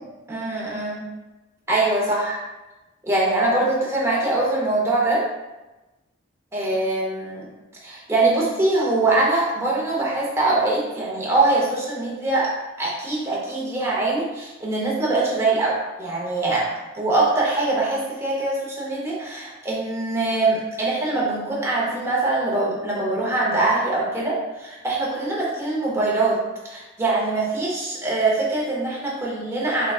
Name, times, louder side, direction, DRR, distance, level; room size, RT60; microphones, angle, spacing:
voice 1, 0.3-1.0 1.7-2.4 3.0-5.3 6.5-7.5 7.8-12.5 12.8-16.7 16.9-26.4 26.6-29.9, right 2 dB, 10° right, -5 dB, 0.7 m, -23 dB
3.8 x 3.5 x 2.3 m, 1.1 s
head